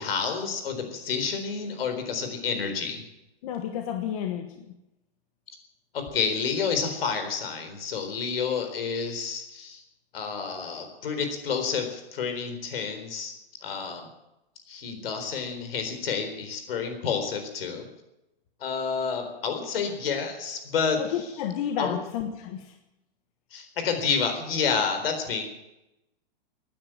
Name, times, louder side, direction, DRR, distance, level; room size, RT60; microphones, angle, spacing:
voice 1, 0.0-3.0 5.9-9.8 10.1-13.3 13.6-14.1 14.7-17.9 18.6-21.0 21.8-22.0 23.5-25.4, left 6 dB, 70° left, 7 dB, 4.1 m, -29 dB
voice 2, 3.4-4.7 21.0-22.7, left 9 dB, 35° left, 5 dB, 1.3 m, -31 dB
16.0 x 10.0 x 9.0 m, 0.92 s
hypercardioid pair, 170°, 30 cm